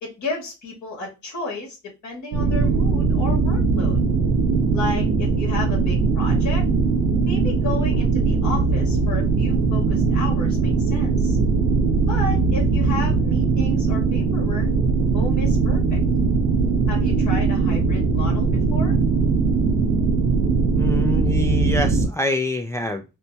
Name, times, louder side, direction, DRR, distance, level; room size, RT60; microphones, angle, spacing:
voice 1, 0.0-4.0 4.7-6.7 7.3-11.4 12.1-14.7 15.1-16.0 16.9-19.0, left 2 dB, 70° left, 0 dB, 1.8 m, -33 dB
sound 1, 2.3-22.1, right 4 dB, 90° right, 0.7 m, -20 dB
voice 2, 20.7-23.0, left 1 dB, 10° left, 4 dB, 0.3 m, -26 dB
4.3 x 2.2 x 2.7 m, 0.27 s
cardioid pair, 90°, 30 cm